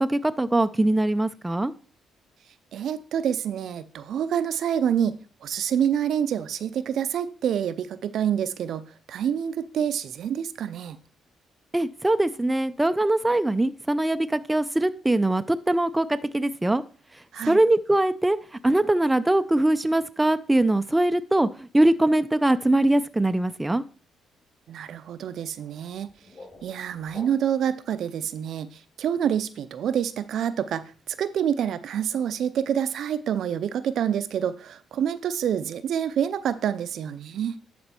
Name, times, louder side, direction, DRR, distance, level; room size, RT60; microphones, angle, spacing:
voice 1, 0.0-1.7 11.7-16.8 17.4-18.4 18.6-23.8, right 1 dB, 10° right, 0.5 m, -22 dB
voice 2, 2.7-11.0 17.3-17.6 24.7-26.1 26.6-37.6, right 9 dB, 70° right, 0.5 m, -27 dB
sound 1, 25.9-27.8, left 2 dB, 40° left, 5.1 m, -48 dB
11.5 x 4.2 x 4.4 m
cardioid pair, 90°, 0 cm